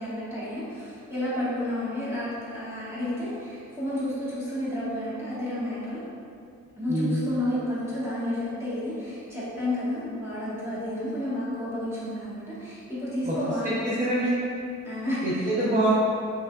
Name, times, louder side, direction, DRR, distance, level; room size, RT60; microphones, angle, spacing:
voice 1, 0.0-6.0 6.8-13.8 14.8-15.5, left 1 dB, 10° right, -12 dB, 1.5 m, -31 dB
voice 2, 13.6-14.3 15.2-15.9, right 1 dB, 25° right, -10 dB, 0.8 m, -25 dB
6.0 x 3.5 x 2.4 m, 2.4 s
wide cardioid pair, 180°, 30 cm